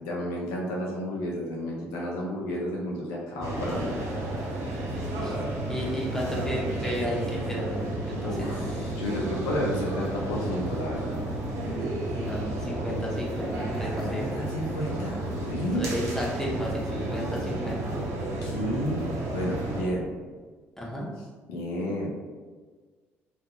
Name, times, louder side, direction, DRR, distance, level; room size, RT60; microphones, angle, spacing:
voice 1, 0.0-4.0 8.2-8.6 9.0-11.2 14.0-15.9 18.4-19.0 19.3-20.1 21.5-22.1, equal, 70° left, -2 dB, 0.5 m, -31 dB
sound 1, 3.4-19.8, right 1 dB, 50° right, 0.6 m, -32 dB
voice 2, 4.9-5.4 5.7-8.9 12.1-14.3 15.7-17.9 20.8-21.1, equal, 5° left, -4 dB, 0.8 m, -33 dB
2.6 x 2.5 x 2.2 m, 1.5 s
figure-of-eight pair, 50°, 7 cm